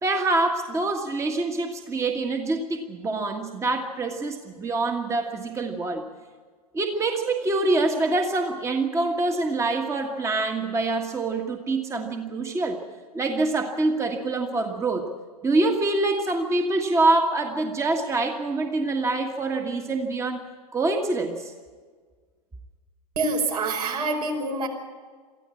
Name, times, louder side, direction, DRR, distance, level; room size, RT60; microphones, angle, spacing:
voice 1, 0.0-6.0 6.7-12.8 13.1-15.1 15.4-20.4 20.7-21.5, right 2 dB, 15° right, 4 dB, 1.6 m, -25 dB
voice 2, 23.2-24.7, right 3 dB, 70° right, 1 dB, 5.2 m, -26 dB
23.5 x 14.5 x 8.5 m, 1.5 s
figure-of-eight pair, 100°, 21 cm